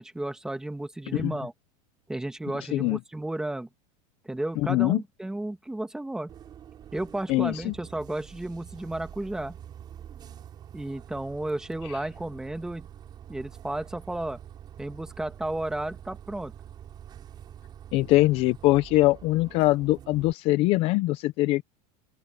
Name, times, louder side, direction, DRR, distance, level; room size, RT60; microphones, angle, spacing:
voice 1, 0.0-1.5 2.1-3.7 4.2-6.3 6.9-9.6 10.7-12.9 13.3-14.4 14.8-16.5, right 1 dB, 5° right, 1.4 m, -33 dB
voice 2, 4.7-5.0 7.3-7.7 17.9-21.6, left 18 dB, 30° left, 0.5 m, -22 dB
Bus, 6.3-20.3, right 10 dB, 25° right, 5.4 m, -46 dB
open air
supercardioid pair, 175°, 18 cm